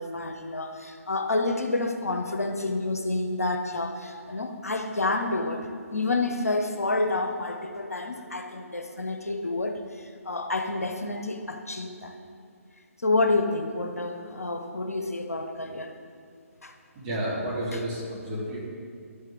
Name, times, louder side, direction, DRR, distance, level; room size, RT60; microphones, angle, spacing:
voice 1, 0.0-5.6 5.9-12.1 13.0-15.9 16.6-16.7 17.7-17.8, left 2 dB, 80° left, 6 dB, 0.8 m, -29 dB
voice 2, 17.0-18.7, right 1 dB, 25° right, -5 dB, 2.3 m, -31 dB
11.5 x 6.5 x 3.6 m, 2.3 s
figure-of-eight pair, 135°, 8 cm